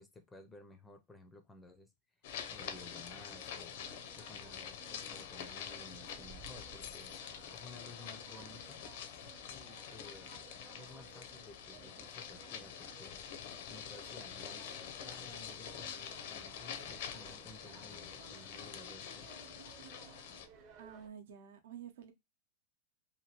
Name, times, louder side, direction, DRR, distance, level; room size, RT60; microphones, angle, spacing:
voice 1, 0.0-1.9 2.5-3.8 4.2-8.8 9.5-10.4 10.8-13.4 13.7-14.7 15.0-19.3, left 2 dB, 10° left, 0.4 m, -55 dB
sound 1, 2.2-20.5, left 8 dB, 65° left, 0.5 m, -46 dB
sound 2, 2.6-21.1, right 6 dB, 45° right, 0.7 m, -58 dB
voice 2, 20.8-22.1, right 8 dB, 75° right, 0.7 m, -50 dB
2.8 x 2.6 x 2.8 m
supercardioid pair, 140°, 0 cm